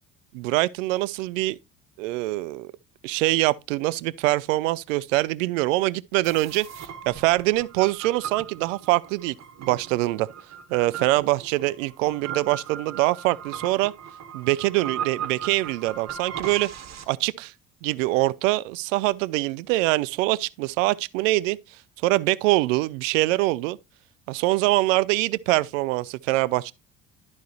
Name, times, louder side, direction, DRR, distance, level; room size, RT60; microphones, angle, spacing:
voice 1, 0.3-1.6 2.0-2.7 3.0-10.3 10.7-13.9 14.3-16.7 17.1-17.5 17.8-21.6 22.0-23.8 24.3-26.7, right 19 dB, 65° right, 0.5 m, -24 dB
sound 1, 6.2-17.0, right 8 dB, 40° right, 1.2 m, -38 dB
11.5 x 5.2 x 3.0 m
figure-of-eight pair, 55°, 41 cm